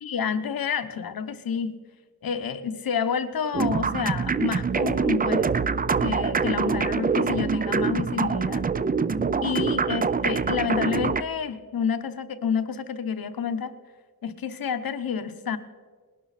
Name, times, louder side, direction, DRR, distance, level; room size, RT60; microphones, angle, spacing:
voice 1, 0.0-1.8 2.2-5.5 6.0-8.7 9.4-13.7 14.2-15.6, left 7 dB, 70° left, 11 dB, 0.9 m, -29 dB
sound 1, 3.5-11.2, right 5 dB, 25° right, 0.4 m, -25 dB
19.5 x 12.0 x 4.1 m, 1.5 s
wide cardioid pair, 110°, 37 cm